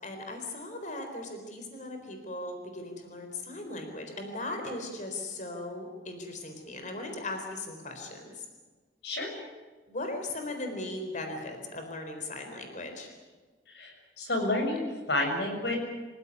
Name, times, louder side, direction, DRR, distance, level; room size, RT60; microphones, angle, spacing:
voice 1, 0.0-8.4 9.9-13.1, left 2 dB, 45° left, 5 dB, 4.1 m, -38 dB
voice 2, 9.0-9.3 13.7-15.8, left 1 dB, 70° left, 3 dB, 6.7 m, -30 dB
27.0 x 16.0 x 9.8 m, 1.4 s
head